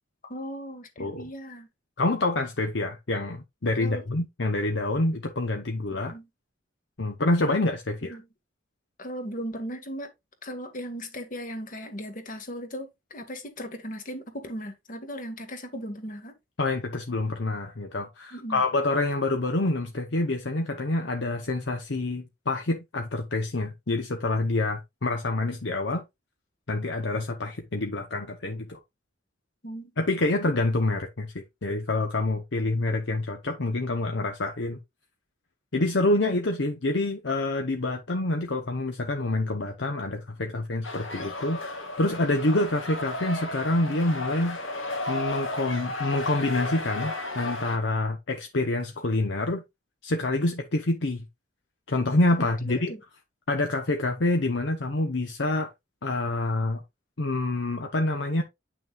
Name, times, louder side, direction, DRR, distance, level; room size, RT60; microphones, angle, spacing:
voice 1, 0.3-1.7 3.8-4.1 6.1-6.3 8.0-8.3 9.0-10.1 10.4-16.3 18.3-18.6 29.6-29.9 52.6-53.0, equal, 45° left, 1.8 m, -37 dB
voice 2, 2.0-6.1 7.0-8.2 16.6-26.0 26.7-28.8 30.0-34.8 35.7-44.6 45.1-49.6 50.0-51.3 51.9-52.9 53.5-55.7 56.0-56.8 57.2-58.4, left 2 dB, 65° left, 0.9 m, -27 dB
sound 1, 40.8-47.8, left 2 dB, 90° left, 2.3 m, -34 dB
9.1 x 6.2 x 2.4 m
head